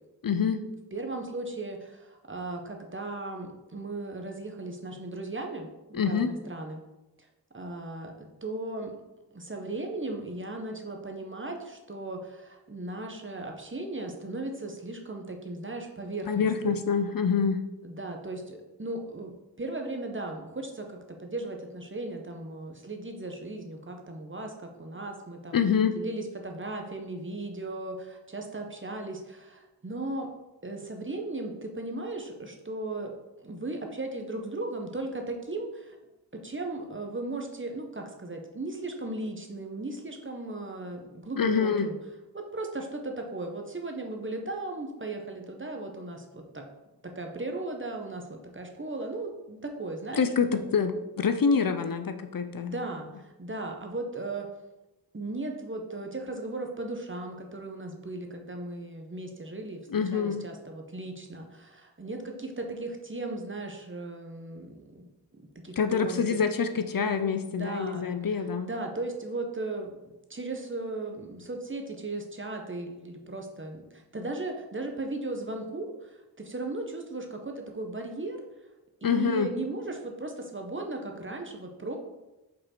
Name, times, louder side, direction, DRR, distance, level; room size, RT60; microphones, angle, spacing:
voice 1, 0.2-0.6 5.9-6.3 16.3-17.6 25.5-26.0 41.4-41.9 50.2-52.7 59.9-60.4 65.8-68.7 79.0-79.5, left 6 dB, 65° left, 9 dB, 0.5 m, -26 dB
voice 2, 0.9-6.8 7.5-8.9 9.3-16.8 17.8-19.3 19.6-25.6 25.9-30.3 30.6-33.1 33.4-36.0 36.4-42.0 42.3-46.6 47.0-50.2 50.5-50.7 52.6-54.5 55.1-65.1 65.6-66.4 67.6-68.1 68.4-78.4 79.0-82.0, right 2 dB, 30° right, 3 dB, 1.0 m, -37 dB
5.3 x 4.2 x 4.4 m, 1.0 s
wide cardioid pair, 40°, 38 cm